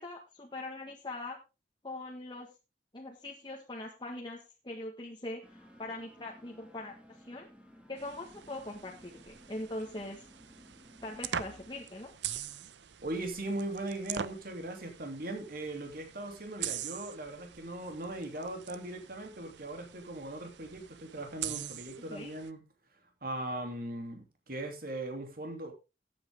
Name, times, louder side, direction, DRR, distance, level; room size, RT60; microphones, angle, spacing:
voice 1, 0.0-1.4 1.8-2.5 2.9-6.9 7.2-7.5 7.9-10.3 11.0-12.1 22.1-22.3, left 2 dB, 25° left, -1 dB, 1.6 m, -42 dB
sound 1, 5.4-11.8, equal, 5° right, 2.2 m, -57 dB
sound 2, 8.0-22.5, right 9 dB, 80° right, 0.7 m, -43 dB
voice 2, 13.0-22.6 23.2-25.7, right 1 dB, 55° right, 4 dB, 3.0 m, -39 dB
14.5 x 8.7 x 3.6 m, 0.29 s
head